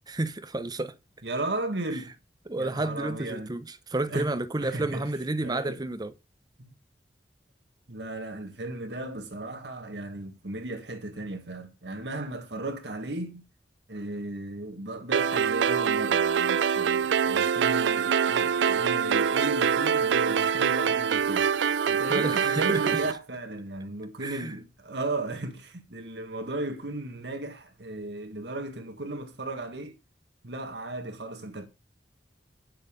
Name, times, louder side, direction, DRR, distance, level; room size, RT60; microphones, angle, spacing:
voice 1, 0.1-0.9 2.5-6.1 22.1-23.0 24.2-24.5, right 2 dB, 25° right, 0.8 m, -31 dB
voice 2, 1.2-2.1 2.6-3.5 4.1-4.2 4.6-5.1 5.4-5.9 6.6-6.7 7.9-13.4 13.9-21.5 21.9-30.0 30.4-31.7, right 2 dB, 70° right, 1.7 m, -35 dB
sound 1, 15.1-23.1, right 7 dB, 85° right, 0.4 m, -24 dB
9.3 x 6.6 x 5.1 m
head